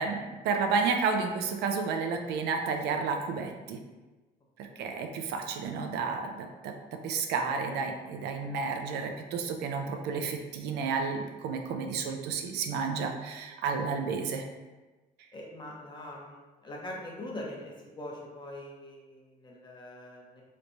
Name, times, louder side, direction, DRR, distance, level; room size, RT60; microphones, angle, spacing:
voice 1, 0.0-3.8 4.6-14.4, right 5 dB, 75° right, 4 dB, 0.5 m, -31 dB
voice 2, 15.3-20.4, left 1 dB, 25° left, -2 dB, 0.8 m, -43 dB
3.2 x 3.1 x 2.6 m, 1.2 s
cardioid pair, 110°, 17 cm